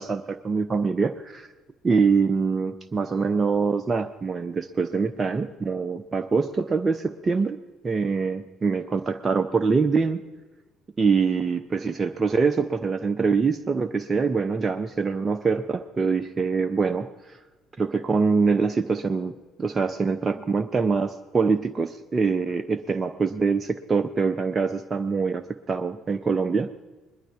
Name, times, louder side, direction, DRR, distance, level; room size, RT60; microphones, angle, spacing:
voice 1, 0.0-1.5 1.8-7.6 7.8-10.2 11.0-17.4 17.8-26.8, right 4 dB, 25° right, 8 dB, 0.6 m, -24 dB
21.0 x 11.5 x 3.6 m, 1.3 s
figure-of-eight pair, 50°, 0 cm